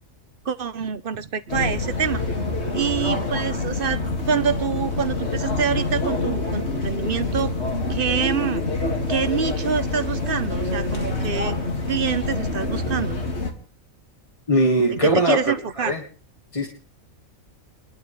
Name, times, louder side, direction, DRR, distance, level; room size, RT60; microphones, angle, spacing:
voice 1, 0.4-2.2 2.7-7.5 7.9-8.7 9.1-11.5 11.9-13.2 14.9-16.0, right 7 dB, 50° right, 13 dB, 0.9 m, -26 dB
sound 1, 1.5-13.5, left 2 dB, 50° left, 2.4 m, -26 dB
voice 2, 14.5-15.4 15.8-16.0 16.5-16.7, equal, 25° left, -1 dB, 1.8 m, -19 dB
29.5 x 11.0 x 3.2 m, 0.42 s
omnidirectional pair, 1.5 m